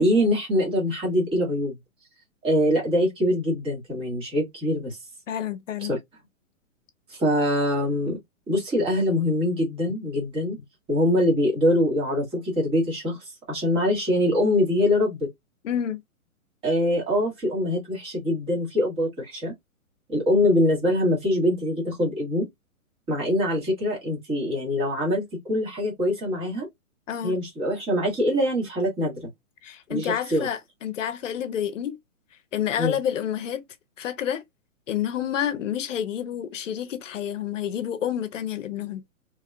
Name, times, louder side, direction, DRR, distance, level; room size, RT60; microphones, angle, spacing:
voice 1, 0.0-1.7 2.4-5.0 5.9-6.0 7.1-8.2 8.5-10.6 10.9-15.3 16.6-19.5 20.1-22.5 23.1-26.7 27.2-29.3 29.9-30.5 32.8-33.0, left 1 dB, 10° right, 1.4 m, -23 dB
voice 2, 5.3-5.9 15.6-16.0 27.1-27.3 29.6-32.0 32.5-33.6 34.0-34.4 34.9-39.0, left 9 dB, 60° left, 0.8 m, -29 dB
3.4 x 3.1 x 2.2 m
hypercardioid pair, 160°, 43 cm